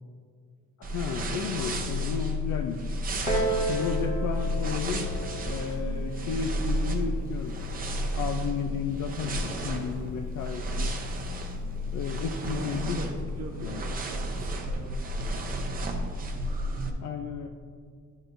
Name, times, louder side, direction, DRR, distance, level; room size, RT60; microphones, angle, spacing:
voice 1, 0.8-3.0 3.7-5.2 5.4-7.6 8.2-10.9 11.9-13.0 13.6-13.8 17.0-17.5, left 6 dB, 70° left, 4 dB, 0.5 m, -33 dB
sound 1, 0.8-16.9, equal, 25° right, 0.7 m, -32 dB
Piano, 3.3-8.5 9.3-9.4, right 1 dB, 55° left, 1.8 m, -34 dB
voice 2, 12.2-14.9 16.7-17.0, right 3 dB, 55° right, 1 dB, 0.9 m, -41 dB
11.0 x 6.2 x 2.6 m, 2.1 s
cardioid pair, 170°, 32 cm